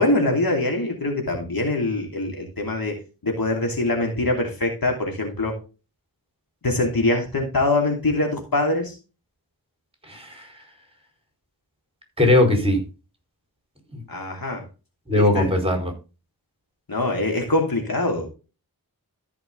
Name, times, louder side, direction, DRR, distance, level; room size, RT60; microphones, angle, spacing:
voice 1, 0.0-3.0 3.2-5.5 6.6-8.9 14.1-14.6 15.1-15.5 16.9-18.3, left 2 dB, 70° left, 2 dB, 2.8 m, -23 dB
voice 2, 10.1-10.5 12.2-12.8 13.9-14.0 15.1-15.9, left 1 dB, 15° right, 3 dB, 4.7 m, -19 dB
13.5 x 5.8 x 3.8 m, 0.32 s
wide cardioid pair, 45°, 37 cm